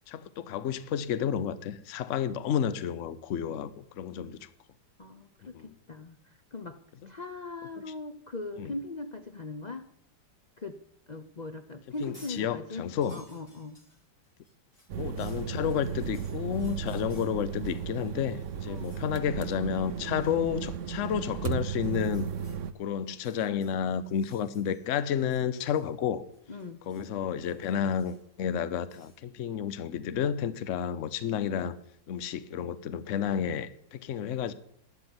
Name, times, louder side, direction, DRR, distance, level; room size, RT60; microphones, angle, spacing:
voice 1, 0.1-4.5 5.5-5.7 7.0-7.1 8.6-8.7 12.0-13.2 14.9-22.3 22.8-26.2 26.9-31.8 32.1-34.5, left 8 dB, 55° left, 0.9 m, -31 dB
voice 2, 5.0-6.8 7.0-9.9 10.6-10.8 11.1-13.8 18.6-19.0 26.5-26.8, left 3 dB, 80° left, 0.3 m, -40 dB
sound 1, 11.8-12.4 12.7-18.1 18.4-19.0 19.4-19.7 20.0-20.4 21.7-22.6 23.1-24.9 25.1-26.1 26.3-27.1 27.4-28.3 28.9-29.2, left 1 dB, 15° left, 5.3 m, -60 dB
sound 2, 14.9-22.7, right 8 dB, 70° right, 0.7 m, -35 dB
12.0 x 8.0 x 9.7 m
omnidirectional pair, 2.1 m